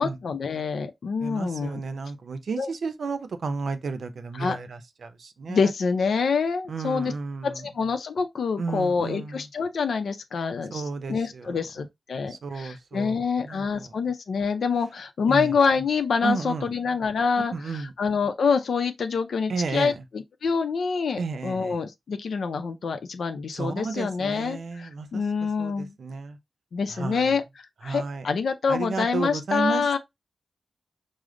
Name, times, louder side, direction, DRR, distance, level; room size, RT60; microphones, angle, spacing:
voice 1, 0.0-1.8 2.6-2.7 4.3-4.6 5.5-7.1 7.4-25.9 26.7-30.0, left 5 dB, 90° left, 0.5 m, -26 dB
voice 2, 1.2-5.6 6.7-7.6 8.6-9.4 10.7-11.5 12.3-13.9 15.3-15.5 16.2-16.7 17.5-17.9 19.5-19.9 21.2-21.8 23.5-25.2 25.6-26.4 26.9-27.3 27.8-28.2 28.7-30.0, right 4 dB, 80° right, 0.6 m, -32 dB
4.9 x 2.0 x 3.7 m
wide cardioid pair, 120°, 0 cm